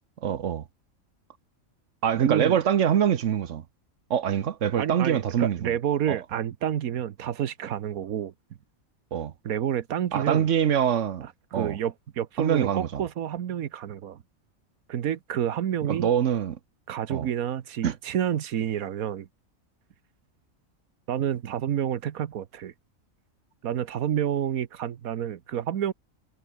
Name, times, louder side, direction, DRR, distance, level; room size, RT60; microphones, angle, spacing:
voice 1, 0.2-0.6 2.0-3.6 4.1-5.7 6.1-6.2 9.1-9.3 10.1-11.3 11.5-11.8 12.4-13.0 15.9-16.6 17.1-17.3 17.8-17.9, right 9 dB, 65° right, 1.2 m, -24 dB
voice 2, 2.2-2.6 4.8-8.3 9.4-10.5 11.2-14.2 14.9-16.1 16.9-19.3 21.1-22.7 23.6-25.9, right 10 dB, 90° right, 1.4 m, -29 dB
omnidirectional pair, 1.4 m